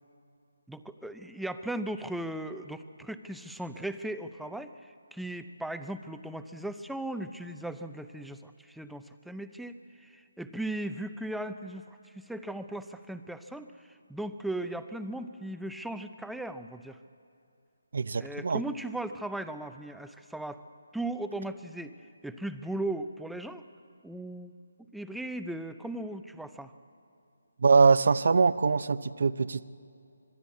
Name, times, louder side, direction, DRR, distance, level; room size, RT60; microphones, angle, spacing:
voice 1, 0.7-11.9 12.1-17.0 18.2-20.6 20.9-22.0 22.2-23.6 24.0-24.5 24.8-26.7, right 1 dB, ahead, 9 dB, 0.6 m, -37 dB
voice 2, 17.9-18.6 27.6-29.6, right 4 dB, 60° right, 15 dB, 0.8 m, -23 dB
26.0 x 21.5 x 8.4 m, 2.6 s
hypercardioid pair, 165°, 0 cm